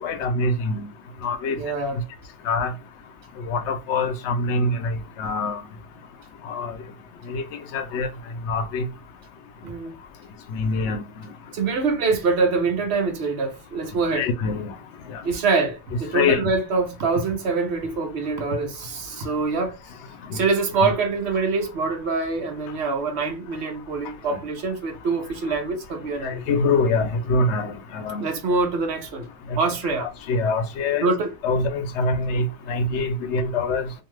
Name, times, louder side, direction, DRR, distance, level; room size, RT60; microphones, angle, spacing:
voice 1, 0.0-0.9 1.2-1.6 2.4-2.7 3.5-5.6 6.4-6.7 7.3-7.4 7.7-8.1 8.5-8.9 10.5-11.0 14.1-14.7 15.1-15.2 16.1-16.4 20.3-20.4 24.3-24.4 26.2-28.2 29.5-29.6 30.0-31.1 31.4-33.9, left 3 dB, 80° left, 0.9 m, -24 dB
voice 2, 1.5-2.0 9.6-10.0 11.5-14.3 15.2-19.8 20.3-26.4 28.2-29.3 29.5-30.1 31.0-31.3, right 4 dB, 70° right, 0.9 m, -25 dB
2.6 x 2.2 x 3.1 m
omnidirectional pair, 1.2 m